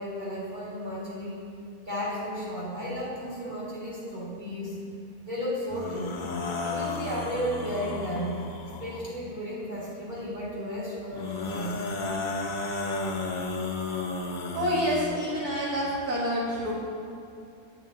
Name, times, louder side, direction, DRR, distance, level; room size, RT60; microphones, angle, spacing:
voice 1, 0.0-1.4 1.9-4.8 5.3-6.2 6.6-8.4 8.8-11.7, equal, 30° right, -7 dB, 2.7 m, -33 dB
sound 1, 5.7-9.1 11.1-15.1, left 3 dB, 60° left, 0.4 m, -33 dB
voice 2, 14.5-16.7, equal, 70° right, -6 dB, 2.0 m, -27 dB
9.0 x 8.8 x 3.8 m, 2.5 s
omnidirectional pair, 1.7 m